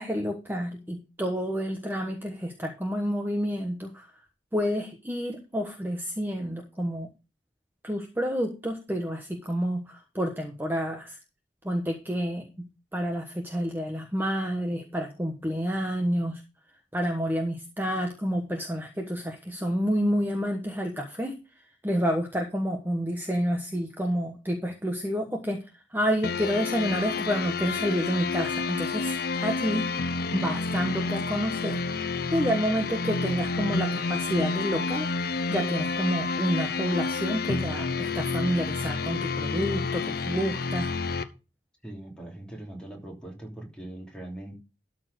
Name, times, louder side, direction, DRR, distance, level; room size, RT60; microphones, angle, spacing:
voice 1, 0.0-4.1 4.5-7.1 7.8-11.2 11.6-12.7 12.9-16.4 16.9-21.3 21.8-25.6 25.9-29.9 30.3-40.9, equal, 10° right, 3 dB, 1.2 m, -29 dB
sound 1, 26.2-41.2, left 4 dB, 60° left, 0.8 m, -29 dB
voice 2, 41.8-44.5, right 1 dB, 5° left, -1 dB, 2.9 m, -41 dB
13.0 x 4.4 x 6.3 m, 0.31 s
head